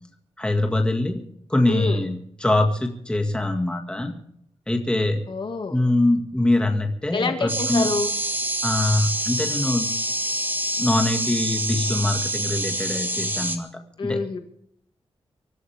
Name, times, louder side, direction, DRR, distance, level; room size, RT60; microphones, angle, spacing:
voice 1, 0.4-1.2 1.5-4.1 4.7-5.2 5.7-7.9 8.6-9.9 10.8-14.4, left 1 dB, 10° left, 3 dB, 2.0 m, -23 dB
voice 2, 1.7-2.0 5.3-5.8 7.1-8.1 14.0-14.4, left 4 dB, 50° left, 5 dB, 2.0 m, -27 dB
sound 1, 7.5-13.6, right 1 dB, 20° right, 2.0 m, -26 dB
25.0 x 14.0 x 3.6 m, 0.68 s
wide cardioid pair, 160°, 10 cm